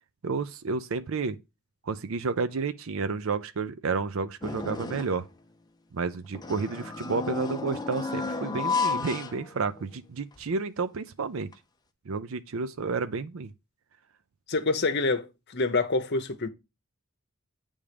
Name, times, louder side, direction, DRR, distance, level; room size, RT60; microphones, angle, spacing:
voice 1, 0.2-1.4 1.8-5.2 5.9-11.5 12.1-13.5, right 4 dB, 70° right, 0.5 m, -31 dB
sound 1, 4.4-5.3 6.3-10.0 10.4-10.5 11.5-11.6, left 4 dB, 20° left, 0.6 m, -32 dB
voice 2, 14.5-16.5, left 3 dB, 50° left, 0.9 m, -27 dB
8.4 x 3.6 x 5.1 m
head